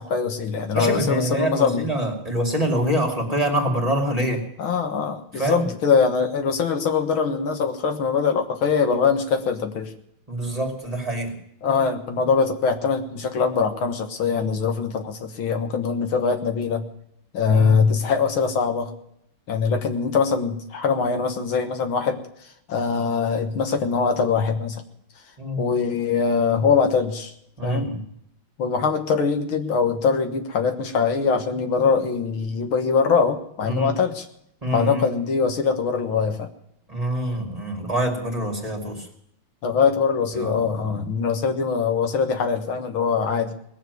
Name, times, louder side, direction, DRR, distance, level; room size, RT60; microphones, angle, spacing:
voice 1, 0.0-1.8 4.6-9.9 11.6-16.8 17.3-18.9 19.5-22.2 22.7-24.8 25.6-27.3 27.6-27.9 28.6-34.3 34.7-36.5 39.6-43.5, left 5 dB, 70° left, 6 dB, 2.2 m, -22 dB
voice 2, 0.7-4.4 5.3-5.7 10.3-11.3 17.5-17.8 25.4-25.7 27.6-28.0 33.7-33.9 34.6-35.1 36.9-39.1 40.3-41.0, right 1 dB, 15° right, 2 dB, 2.5 m, -25 dB
19.5 x 7.5 x 9.4 m, 0.74 s
omnidirectional pair, 2.3 m